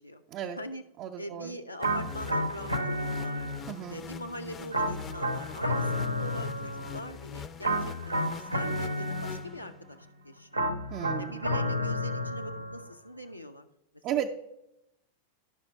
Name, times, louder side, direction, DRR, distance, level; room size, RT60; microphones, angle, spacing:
voice 1, 0.0-0.8 1.2-3.5 3.9-10.7 11.2-13.7, equal, 90° left, 4 dB, 0.4 m, -42 dB
voice 2, 1.0-1.6 3.7-4.0 10.9-11.4 14.0-14.3, right 10 dB, 35° right, 2 dB, 0.4 m, -34 dB
sound 1, 1.8-10.0, left 7 dB, 25° left, 0.4 m, -43 dB
sound 2, 1.8-3.9 4.7-7.1 7.6-9.7 10.5-12.9, equal, 85° right, 0.6 m, -31 dB
11.0 x 5.5 x 4.4 m, 0.87 s
figure-of-eight pair, 90°, 0 cm